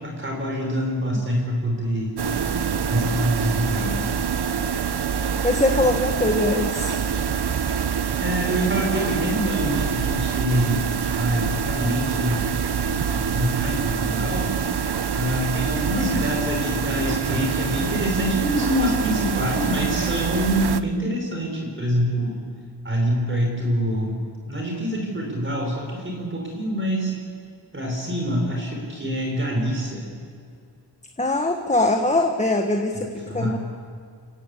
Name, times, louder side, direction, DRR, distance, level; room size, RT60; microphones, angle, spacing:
voice 1, 0.0-2.2 2.9-4.1 8.2-10.9 11.1-12.4 13.1-14.5 15.1-22.4 22.8-24.2 24.5-27.1 27.7-30.1 32.9-33.6, equal, 25° right, 0 dB, 5.0 m, -25 dB
sound 1, 2.2-20.8, right 7 dB, 60° right, 0.9 m, -25 dB
voice 2, 5.4-7.0 31.2-33.6, left 2 dB, 15° left, 4 dB, 1.3 m, -22 dB
29.5 x 16.5 x 8.4 m, 2.3 s
wide cardioid pair, 155°, 44 cm